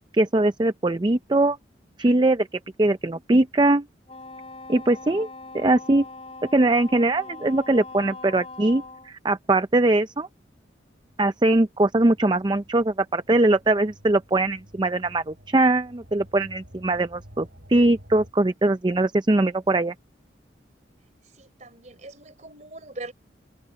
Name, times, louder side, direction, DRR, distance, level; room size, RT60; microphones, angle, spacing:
voice 1, 0.1-1.6 2.0-3.9 4.7-5.3 5.5-6.1 6.5-10.3 11.2-19.9, right 2 dB, 25° right, 0.5 m, -21 dB
Wind instrument woodwind instrument, 4.1-9.1, left 3 dB, 30° left, 5.0 m, -41 dB
sound 1, 10.9-18.3, equal, 70° right, 7.6 m, -51 dB
voice 2, 21.4-23.1, right 2 dB, 40° right, 4.0 m, -41 dB
open air
head